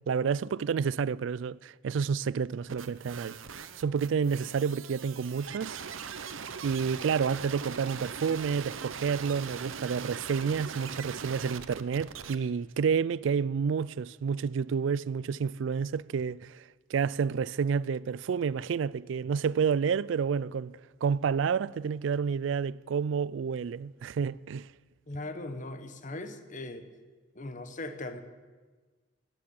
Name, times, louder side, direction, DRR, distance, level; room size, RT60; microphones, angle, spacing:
voice 1, 0.1-3.4 3.7-5.8 6.6-24.7, right 6 dB, 65° right, 0.3 m, -29 dB
sound 1, 2.7-12.3, right 6 dB, 85° right, 0.8 m, -41 dB
voice 2, 25.1-26.9 27.3-28.2, left 2 dB, 40° left, 1.0 m, -39 dB
13.0 x 9.9 x 8.7 m
head